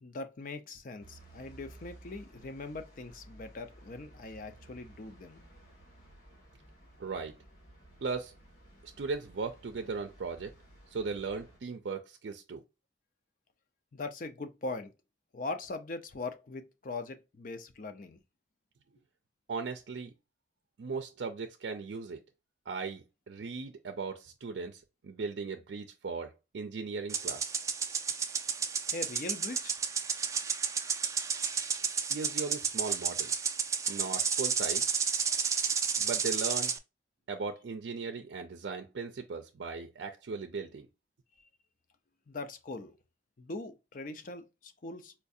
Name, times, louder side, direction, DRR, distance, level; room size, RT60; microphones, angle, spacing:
voice 1, 0.0-5.4 13.9-14.9 15.3-18.2 28.9-29.8 42.3-43.0 43.4-45.1, left 3 dB, 50° left, 0.5 m, -41 dB
sound 1, 1.0-11.6, right 1 dB, 85° left, 1.7 m, -56 dB
voice 2, 7.0-7.4 8.0-8.3 8.8-10.5 10.9-12.6 19.5-20.1 20.8-22.2 22.7-27.6 32.1-33.5 33.9-34.9 36.0-36.7 37.3-40.9, right 4 dB, 80° right, 0.4 m, -38 dB
sound 2, 27.1-36.8, right 6 dB, 20° right, 0.3 m, -32 dB
4.4 x 2.4 x 2.6 m
head